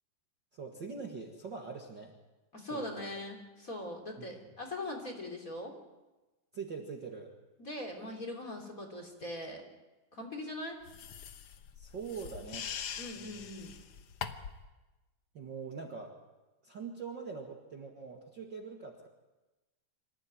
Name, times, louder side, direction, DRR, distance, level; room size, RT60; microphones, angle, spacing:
voice 1, 0.5-2.1 2.7-3.1 4.2-4.3 6.5-7.3 11.8-12.7 13.2-13.5 15.3-16.2 16.6-19.1, right 5 dB, 40° right, 1 dB, 2.0 m, -43 dB
voice 2, 2.5-5.8 7.6-9.6 10.1-10.8 13.0-13.7, left 1 dB, 25° left, 2 dB, 3.4 m, -41 dB
sound 1, 10.9-14.7, left 8 dB, 60° left, 1.6 m, -43 dB
26.0 x 15.5 x 9.2 m, 1.1 s
omnidirectional pair, 3.8 m